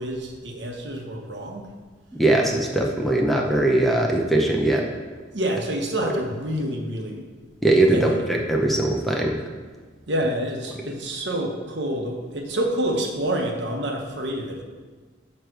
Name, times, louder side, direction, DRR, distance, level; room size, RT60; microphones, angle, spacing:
voice 1, 0.0-1.7 5.3-7.2 7.9-8.3 10.1-14.6, right 1 dB, 65° right, 1 dB, 1.1 m, -28 dB
voice 2, 2.1-4.8 7.6-9.4, right 1 dB, ahead, 0 dB, 0.6 m, -20 dB
9.3 x 3.2 x 6.4 m, 1.4 s
head